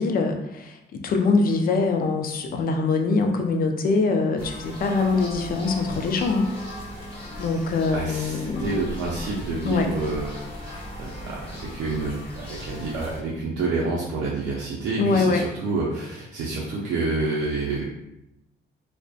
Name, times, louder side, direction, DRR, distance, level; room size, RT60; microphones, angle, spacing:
voice 1, 0.0-6.5 7.4-8.7 9.6-9.9 15.0-15.4, left 3 dB, 50° left, 4 dB, 0.4 m, -23 dB
sound 1, 4.4-13.2, equal, 25° left, 0.9 m, -37 dB
voice 2, 7.9-17.8, right 3 dB, 85° right, -5 dB, 0.5 m, -28 dB
2.5 x 2.1 x 2.3 m, 0.83 s
cardioid pair, 90°, 20 cm